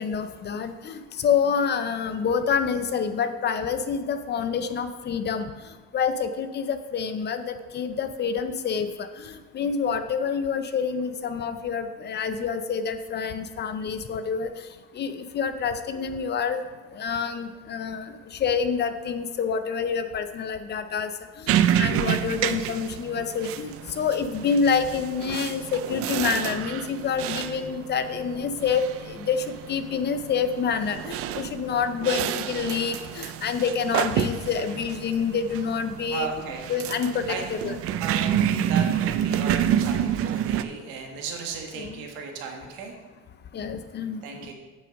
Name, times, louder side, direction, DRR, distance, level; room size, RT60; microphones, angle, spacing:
voice 1, 0.0-5.5 5.9-8.9 9.2-14.5 15.0-16.6 16.9-21.1 21.5-36.3 36.7-37.8 41.8-41.9 43.5-44.2, left 6 dB, 30° left, 10 dB, 0.5 m, -27 dB
sound 1, 21.5-40.6, right 10 dB, 45° right, 0.4 m, -28 dB
voice 2, 27.2-27.7 34.6-34.8 36.1-36.6 37.3-38.3 38.7-42.9 44.2-44.5, right 5 dB, 85° right, 2 dB, 1.6 m, -36 dB
8.6 x 5.8 x 5.1 m, 1.3 s
cardioid pair, 145°, 34 cm